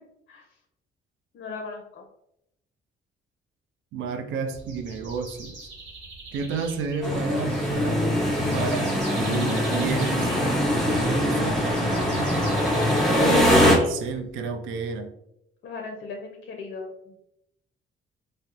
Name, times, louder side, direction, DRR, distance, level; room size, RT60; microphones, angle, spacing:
voice 1, 1.3-2.0 15.6-17.2, left 4 dB, 60° left, 2 dB, 0.5 m, -37 dB
voice 2, 3.9-5.6 6.3-8.1 8.5-10.3 10.9-12.4 13.5-15.1, right 5 dB, 80° right, 5 dB, 0.4 m, -31 dB
sound 1, 4.5-14.4, right 2 dB, 65° right, 1.0 m, -43 dB
sound 2, 7.0-13.8, equal, ahead, 0.9 m, -22 dB
2.9 x 2.0 x 2.3 m, 0.80 s
cardioid pair, 90°, 20 cm